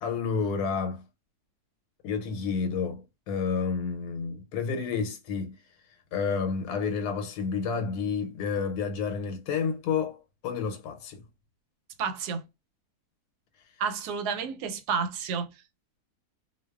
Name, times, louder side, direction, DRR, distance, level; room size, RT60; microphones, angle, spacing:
voice 1, 0.0-1.0 2.0-5.5 6.1-11.2, left 5 dB, 90° left, 1.1 m, -30 dB
voice 2, 12.0-12.4 13.8-15.5, right 6 dB, 85° right, 1.1 m, -30 dB
2.5 x 2.2 x 2.2 m
omnidirectional pair, 1.7 m